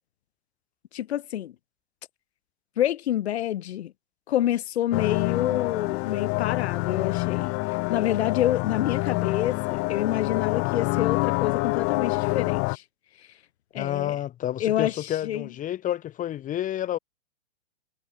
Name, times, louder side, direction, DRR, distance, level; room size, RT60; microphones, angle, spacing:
voice 1, 0.9-1.5 2.8-3.9 4.3-7.6 7.9-12.8 13.7-14.2 14.6-15.5, left 12 dB, 65° left, 4.1 m, -27 dB
sound 1, 4.9-12.8, left 28 dB, 40° left, 2.7 m, -27 dB
voice 2, 13.8-17.0, left 12 dB, 20° left, 1.5 m, -29 dB
hypercardioid pair, 115°, 35 cm